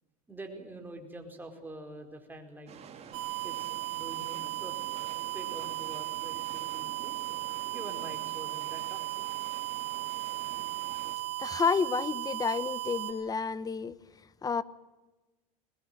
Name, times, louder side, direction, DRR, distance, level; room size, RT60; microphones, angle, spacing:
voice 1, 0.3-2.7 3.4-7.2 7.7-9.2, right 1 dB, 10° right, 4.7 m, -46 dB
sound 1, 2.7-11.2, right 7 dB, 35° right, 3.7 m, -49 dB
sound 2, 3.1-13.1, right 19 dB, 60° right, 3.4 m, -36 dB
voice 2, 11.4-14.0 14.4-14.6, left 5 dB, 20° left, 0.9 m, -30 dB
22.0 x 21.0 x 7.9 m
supercardioid pair, 105°, 19 cm